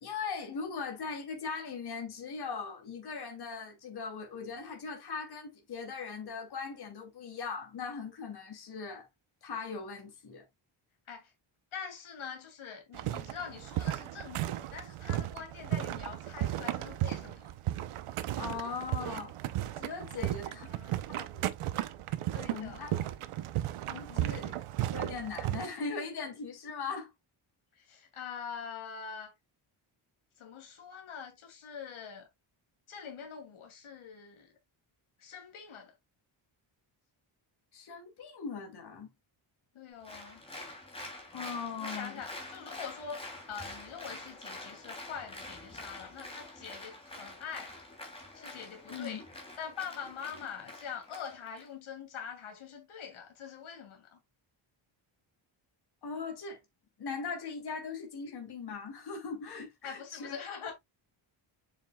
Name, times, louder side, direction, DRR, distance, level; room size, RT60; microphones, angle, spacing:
voice 1, 0.0-9.1 9.4-10.4 18.4-19.3 19.8-20.7 21.1-21.5 22.5-23.0 23.9-24.6 24.9-27.1 37.7-39.1 41.3-42.2 48.9-49.2 56.0-56.6 57.0-60.4, left 5 dB, 50° left, 2.8 m, -39 dB
voice 2, 11.7-17.5 20.2-21.0 22.3-23.0 24.1-24.5 27.8-29.3 30.4-32.3 32.9-34.5 35.2-35.9 39.7-40.4 41.8-47.7 48.3-49.2 49.6-54.2 59.8-60.7, left 7 dB, 75° left, 2.8 m, -44 dB
sound 1, 12.9-25.7, right 13 dB, 85° right, 0.9 m, -35 dB
Applause, 40.0-51.7, left 2 dB, 10° left, 3.0 m, -46 dB
7.4 x 7.1 x 2.3 m
wide cardioid pair, 170°, 49 cm